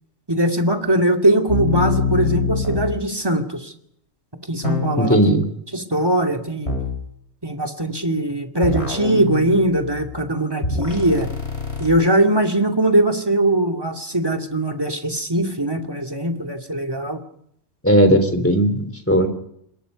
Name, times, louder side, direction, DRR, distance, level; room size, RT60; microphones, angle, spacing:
voice 1, 0.3-3.7 4.5-5.2 5.7-6.7 7.4-11.3 11.8-17.2, right 1 dB, 15° right, 4 dB, 2.6 m, -20 dB
sound 1, 1.5-3.0 4.6-5.2 6.7-7.0 8.6-10.1 10.6-11.9, left 3 dB, 50° left, 7.4 m, -24 dB
voice 2, 5.0-5.4 17.8-19.3, equal, 10° left, 8 dB, 3.6 m, -16 dB
27.5 x 21.5 x 5.3 m, 0.72 s
omnidirectional pair, 1.4 m